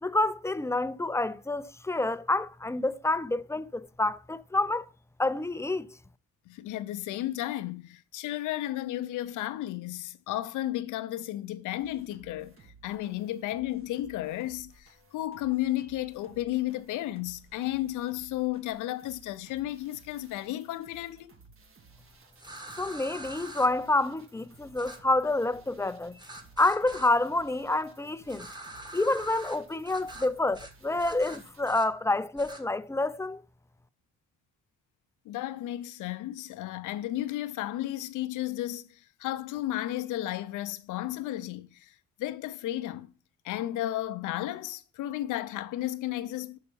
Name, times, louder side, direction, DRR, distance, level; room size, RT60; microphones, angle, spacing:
voice 1, 0.0-4.9 5.2-6.0 22.8-26.2 26.6-28.5 28.9-33.4, left 2 dB, 10° left, 0.4 m, -28 dB
voice 2, 6.5-12.5 12.8-21.3 35.3-43.1 43.4-46.6, left 14 dB, 85° left, 0.6 m, -33 dB
sound 1, 11.8-31.7, right 4 dB, 45° right, 1.7 m, -58 dB
sound 2, 22.4-23.7 24.8-25.0 26.2-27.1 28.3-29.6 29.9-30.3 30.5-30.7 31.0-31.9 32.4-32.6, right 1 dB, 15° right, 1.5 m, -44 dB
5.8 x 5.5 x 6.8 m
cardioid pair, 90°, 30 cm